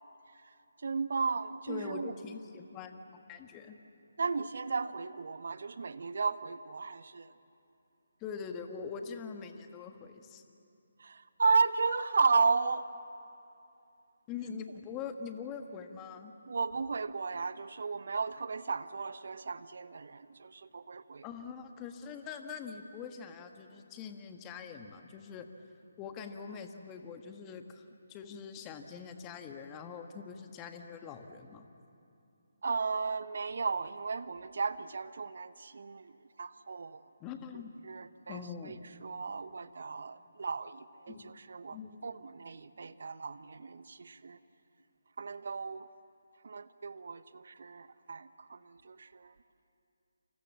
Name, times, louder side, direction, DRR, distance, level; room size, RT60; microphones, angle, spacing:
voice 1, 0.8-2.1 4.2-7.3 11.0-12.8 16.5-21.2 32.6-36.1 36.4-37.0 37.8-38.8 39.0-41.8 42.0-44.4 45.2-45.9 46.4-49.3, right 4 dB, 55° right, 14 dB, 0.9 m, -34 dB
voice 2, 1.7-3.8 8.2-10.4 14.3-16.3 21.2-25.5 26.0-31.6 37.2-37.7 38.3-38.8 41.1-41.3 41.7-42.0, left 6 dB, 20° left, 6 dB, 1.6 m, -43 dB
29.0 x 27.0 x 7.4 m, 2.6 s
figure-of-eight pair, 145°, 0 cm